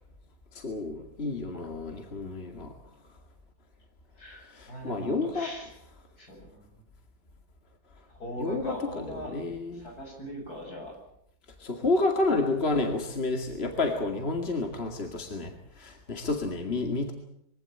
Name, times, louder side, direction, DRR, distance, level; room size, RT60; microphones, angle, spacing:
voice 1, 0.5-2.7 4.5-5.5 8.4-8.8 9.3-9.9 11.6-17.1, left 3 dB, 40° left, 3 dB, 2.5 m, -30 dB
voice 2, 4.2-5.7 6.2-6.6 8.1-9.3 9.7-11.0, left 1 dB, 75° left, 1 dB, 7.9 m, -40 dB
23.5 x 16.5 x 8.8 m, 0.76 s
omnidirectional pair, 1.6 m